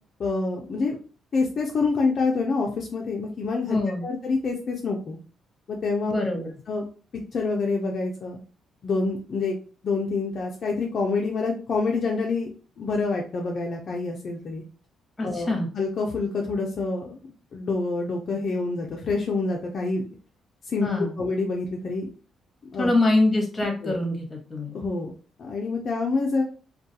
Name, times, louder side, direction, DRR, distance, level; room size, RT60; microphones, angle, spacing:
voice 1, 0.2-1.0 1.3-5.2 5.7-6.2 6.7-6.9 7.3-8.4 8.8-9.5 9.8-14.6 15.2-20.0 20.7-20.9 21.2-22.1 22.7-22.9 23.8-24.0 24.7-25.1 25.4-26.4, left 3 dB, 50° left, 0 dB, 0.4 m, -27 dB
voice 2, 3.7-4.0 6.0-6.5 15.2-15.7 20.8-21.2 22.8-24.7, left 2 dB, 20° left, 1 dB, 0.9 m, -24 dB
2.3 x 2.2 x 2.7 m, 0.38 s
cardioid pair, 90°, 0 cm